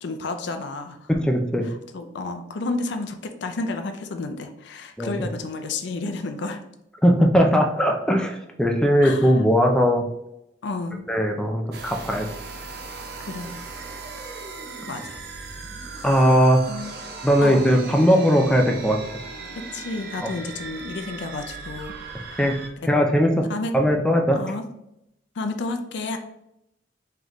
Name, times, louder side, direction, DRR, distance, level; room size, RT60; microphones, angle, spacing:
voice 1, 0.0-1.1 1.6-6.6 9.0-9.3 10.6-11.0 13.3-13.6 14.2-14.5 14.9-15.2 16.7-16.9 17.4-17.7 19.7-21.9 22.3-22.6 22.8-22.9 23.5-23.7 24.3-24.6 25.4-26.2, left 3 dB, 65° left, 7 dB, 0.5 m, -31 dB
voice 2, 1.1-1.6 5.0-5.3 7.0-10.0 11.1-12.3 16.0-16.6 17.2-19.0 22.4-22.5 22.9-23.4 23.7-24.4, equal, 5° left, 2 dB, 0.4 m, -19 dB
sound 1, 11.7-22.7, right 3 dB, 60° right, 0.5 m, -38 dB
3.9 x 3.3 x 3.0 m, 0.82 s
head